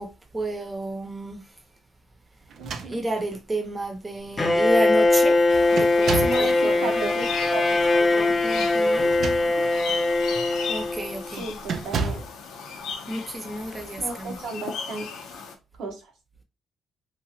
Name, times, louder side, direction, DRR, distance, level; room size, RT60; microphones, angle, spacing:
voice 1, 0.0-1.4 2.8-5.4 5.7-6.9 8.4-9.1 10.7-11.4 13.1-14.4, right 1 dB, 20° right, 0.8 m, -31 dB
sound 1, 2.5-3.4 4.3-4.4 4.7-5.1 5.8-6.5 8.9-9.8 10.3-10.6 11.7-12.4, right 5 dB, 65° right, 0.4 m, -31 dB
voice 2, 2.6-3.0 6.2-8.3 9.2-9.4 11.3-12.2 14.0-15.3 15.8-16.0, right 3 dB, 80° right, 0.9 m, -34 dB
Bowed string instrument, 4.4-11.3, left 2 dB, 25° left, 0.6 m, -21 dB
sound 2, 5.5-15.5, left 6 dB, 85° left, 0.5 m, -36 dB
2.9 x 2.4 x 2.7 m
cardioid pair, 90°, 0 cm